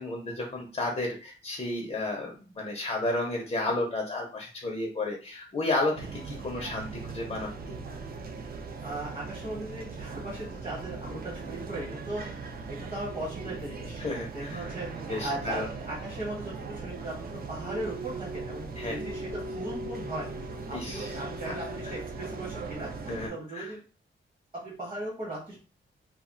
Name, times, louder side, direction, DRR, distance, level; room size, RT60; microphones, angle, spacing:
voice 1, 0.0-7.7 12.2-12.3 14.0-14.7 15.1-15.7 18.8-19.1 20.7-21.2 21.4-21.5 21.8-21.9 23.1-23.7, left 2 dB, 30° left, -1 dB, 0.5 m, -32 dB
sound 1, 6.0-23.3, right 3 dB, 45° right, 0.4 m, -39 dB
voice 2, 8.8-14.0 14.3-23.8 24.5-25.6, right 1 dB, 30° right, -3 dB, 1.0 m, -38 dB
2.3 x 2.1 x 3.7 m, 0.36 s
wide cardioid pair, 165°, 21 cm